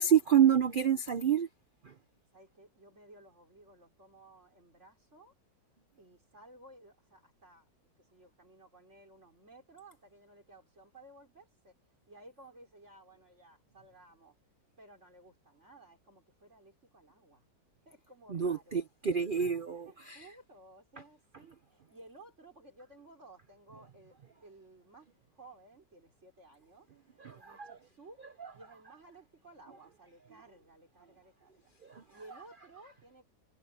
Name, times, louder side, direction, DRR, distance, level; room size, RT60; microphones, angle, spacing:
voice 1, 0.0-1.5 18.3-20.2 27.2-27.8 28.4-28.5, right 8 dB, 70° right, 0.5 m, -28 dB
voice 2, 2.3-5.3 6.0-7.7 8.0-11.7 12.1-14.4 14.8-17.5 17.8-18.8 19.8-24.2 24.4-25.1 25.3-26.9 27.3-28.2 28.5-31.7 32.1-33.2, right 2 dB, 40° right, 5.0 m, -56 dB
omnidirectional pair, 1.9 m